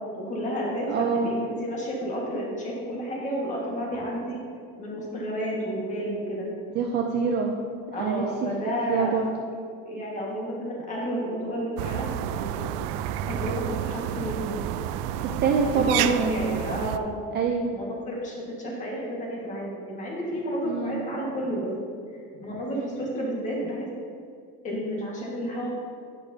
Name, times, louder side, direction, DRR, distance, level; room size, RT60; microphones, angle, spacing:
voice 1, 0.2-4.4 4.8-6.5 7.9-9.2 9.9-12.8 13.3-14.8 15.7-17.2 17.7-21.7 22.4-23.9 24.6-25.7, equal, 20° left, -3 dB, 1.6 m, -31 dB
voice 2, 0.9-1.3 6.7-7.6 8.0-8.5 8.9-9.3 15.2-16.5 17.3-17.7 20.7-21.0, right 5 dB, 30° right, 2 dB, 0.4 m, -25 dB
sound 1, 11.8-17.0, right 11 dB, 85° right, 0.5 m, -30 dB
10.5 x 8.9 x 2.7 m, 2.2 s
cardioid pair, 180°, 33 cm